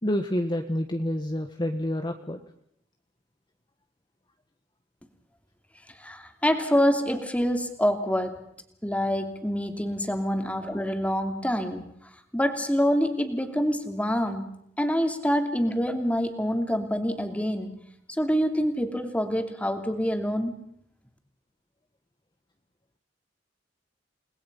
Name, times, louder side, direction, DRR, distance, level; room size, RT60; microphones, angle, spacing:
voice 1, 0.0-2.4 10.6-10.7, left 1 dB, 25° left, 5 dB, 1.4 m, -28 dB
voice 2, 6.0-8.4 8.8-11.9 12.3-17.8 18.2-20.5, equal, 10° left, 6 dB, 2.9 m, -26 dB
29.5 x 20.5 x 5.6 m, 0.72 s
head